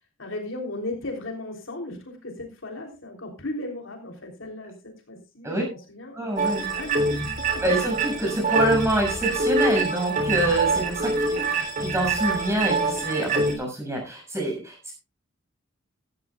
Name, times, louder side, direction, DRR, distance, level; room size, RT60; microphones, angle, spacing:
voice 1, 0.2-6.2 6.7-7.6 11.1-11.7, left 2 dB, 75° left, 2 dB, 3.4 m, -36 dB
voice 2, 6.1-6.7 7.6-11.4 11.8-14.9, right 1 dB, 15° right, 1 dB, 6.6 m, -26 dB
sound 1, 6.4-13.5, right 3 dB, 40° right, 3.5 m, -25 dB
16.0 x 13.0 x 2.4 m, 0.27 s
head